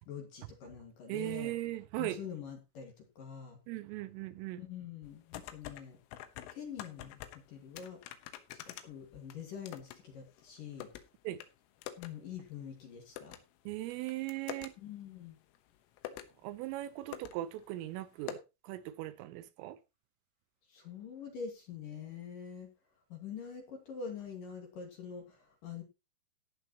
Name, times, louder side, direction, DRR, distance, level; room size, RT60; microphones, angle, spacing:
voice 1, 0.1-1.5 2.0-3.6 4.6-6.0 6.5-7.2 7.5-8.0 8.7-10.9 12.0-13.4 14.8-15.4 20.7-22.7 23.1-25.8, left 7 dB, 55° left, 2.9 m, -45 dB
voice 2, 1.1-2.2 3.7-4.6 11.3-11.4 13.7-14.7 16.4-18.4 18.7-19.8, right 15 dB, 85° right, 3.5 m, -38 dB
sound 1, 5.0-5.8 6.1-7.4 7.8-10.0 10.3-11.0 11.4-11.5 11.8-12.1 12.4-12.5 13.2-13.4 13.9-14.7 15.5-15.6 16.0-16.3 16.8-16.9 17.1-17.3 17.6-17.7 18.3-18.4, left 13 dB, 90° left, 3.8 m, -45 dB
14.5 x 10.0 x 3.0 m
omnidirectional pair, 5.8 m